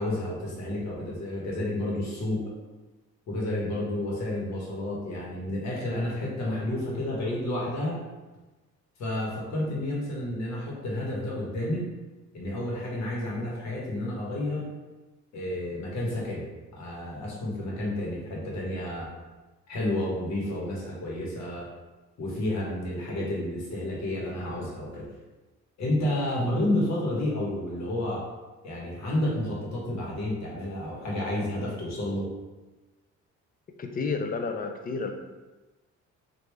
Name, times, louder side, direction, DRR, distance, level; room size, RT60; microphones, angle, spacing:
voice 1, 0.0-2.5 3.3-8.0 9.0-11.9 12.3-14.7 15.3-16.5 16.7-19.1 19.7-21.7 22.2-25.1 25.8-28.2 28.6-32.3, left 1 dB, 65° left, -4 dB, 1.3 m, -30 dB
voice 2, 33.8-35.1, left 4 dB, 30° left, 5 dB, 0.4 m, -30 dB
3.1 x 2.6 x 3.3 m, 1.2 s
cardioid pair, 90°, 30 cm